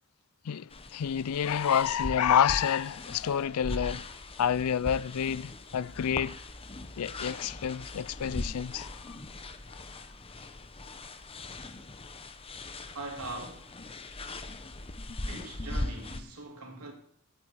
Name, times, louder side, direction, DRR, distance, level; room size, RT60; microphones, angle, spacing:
voice 1, 0.4-4.1 4.4-6.4 7.0-9.2, left 8 dB, 75° left, 0.4 m, -28 dB
sound 1, 0.7-16.2, left 2 dB, 25° left, 0.9 m, -40 dB
voice 2, 12.9-13.8 15.2-16.9, right 2 dB, 80° right, 3.4 m, -41 dB
17.0 x 9.1 x 4.8 m
head